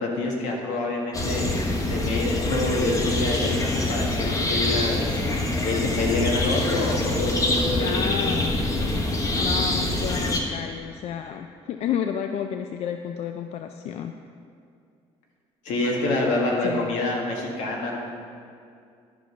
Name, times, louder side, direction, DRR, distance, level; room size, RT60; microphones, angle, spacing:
voice 1, 0.0-1.5 1.9-5.1 5.6-8.1 15.6-18.0, left 2 dB, 85° left, -1 dB, 1.8 m, -27 dB
sound 1, 1.1-10.4, left 2 dB, 25° left, 1.2 m, -25 dB
voice 2, 7.8-8.5 9.4-14.1 16.6-16.9, left 9 dB, 60° left, 6 dB, 0.4 m, -31 dB
12.0 x 5.0 x 5.6 m, 2.4 s
cardioid pair, 115°, 12 cm